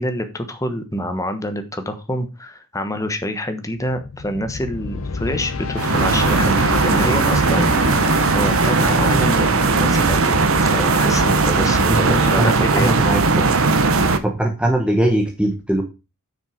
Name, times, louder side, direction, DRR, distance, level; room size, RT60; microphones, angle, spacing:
voice 1, 0.0-7.7 8.3-13.0, equal, 15° left, 8 dB, 1.2 m, -26 dB
sound 1, 3.8-12.9, left 4 dB, 70° left, 0.7 m, -31 dB
sound 2, 5.8-14.2, right 3 dB, 70° right, 0.9 m, -17 dB
voice 2, 11.9-13.5 14.2-15.8, right 1 dB, 5° right, 2 dB, 0.9 m, -21 dB
7.6 x 6.3 x 5.0 m, 0.29 s
head